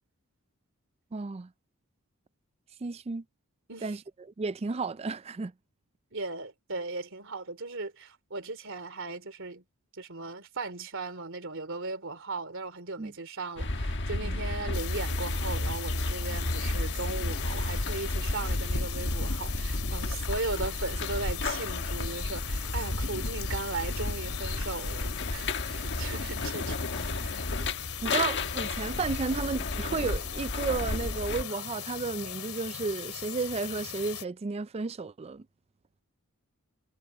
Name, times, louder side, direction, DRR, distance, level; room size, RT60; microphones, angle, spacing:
voice 1, 1.1-1.5 2.8-3.2 3.8-4.0 4.4-5.5 13.0-13.1 14.2-14.4 26.1-26.2 28.0-35.5, right 4 dB, 30° right, 0.4 m, -33 dB
voice 2, 6.1-9.6 9.9-27.7, right 3 dB, 60° right, 3.3 m, -37 dB
sound 1, 13.6-31.4, left 2 dB, 55° left, 1.4 m, -32 dB
sound 2, 14.7-34.3, left 11 dB, 75° left, 2.8 m, -40 dB
head